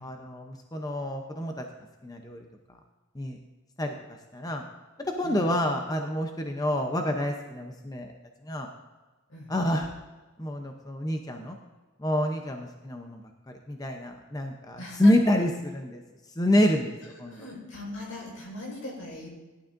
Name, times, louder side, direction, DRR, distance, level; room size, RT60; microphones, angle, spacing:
voice 1, 0.0-1.6 2.0-2.4 3.1-3.4 3.8-3.9 4.3-4.6 5.1-8.1 8.4-8.7 9.5-9.9 10.4-11.6 12.0-13.2 13.5-16.0 16.4-16.9 17.2-17.5, left 1 dB, 15° left, 3 dB, 0.7 m, -27 dB
voice 2, 14.8-15.1 17.3-19.3, left 1 dB, 80° left, -2 dB, 4.5 m, -40 dB
17.5 x 11.5 x 2.6 m, 1.2 s
head